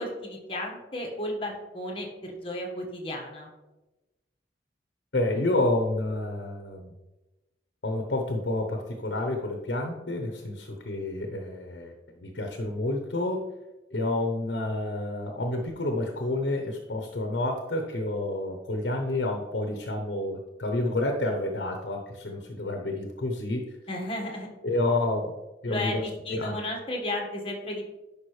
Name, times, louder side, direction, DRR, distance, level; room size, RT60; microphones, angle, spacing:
voice 1, 0.0-3.5 23.9-24.5 25.7-28.0, left 1 dB, 30° left, 0 dB, 1.5 m, -34 dB
voice 2, 5.1-6.9 7.8-13.5 13.9-23.7 24.6-25.3 25.6-26.0 26.3-26.6, left 2 dB, 70° left, 3 dB, 0.9 m, -29 dB
10.5 x 5.2 x 3.2 m, 1.1 s
head